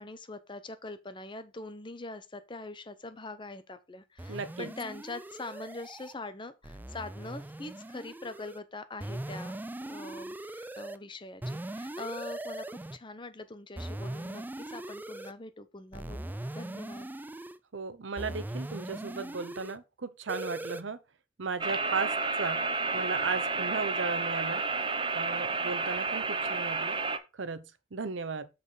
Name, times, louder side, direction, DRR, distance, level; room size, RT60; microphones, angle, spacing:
voice 1, 0.0-17.1, left 2 dB, 25° left, 0.7 m, -43 dB
sound 1, 4.2-6.1 6.6-8.6 9.0-11.0 11.4-13.0 13.8-15.3 15.9-17.6 18.2-19.8 20.3-20.8, right 1 dB, 10° right, 0.3 m, -40 dB
voice 2, 4.3-4.7 17.7-21.0 21.4-22.6 22.9-24.6 25.1-27.0 27.3-27.6 27.9-28.5, right 4 dB, 85° right, 0.7 m, -35 dB
sound 2, 21.6-27.2, right 3 dB, 25° right, 0.7 m, -31 dB
7.6 x 4.1 x 5.0 m
head